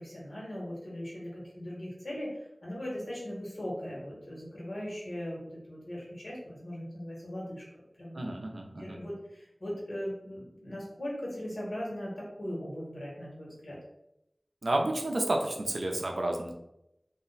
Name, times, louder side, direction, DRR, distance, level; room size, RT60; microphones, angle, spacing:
voice 1, 0.0-7.6 8.0-8.2 8.8-13.8, equal, 75° left, -5 dB, 1.2 m, -39 dB
voice 2, 8.1-9.0 14.6-16.5, right 1 dB, 90° right, 2 dB, 0.4 m, -31 dB
2.4 x 2.1 x 3.8 m, 0.83 s
wide cardioid pair, 55°, 0 cm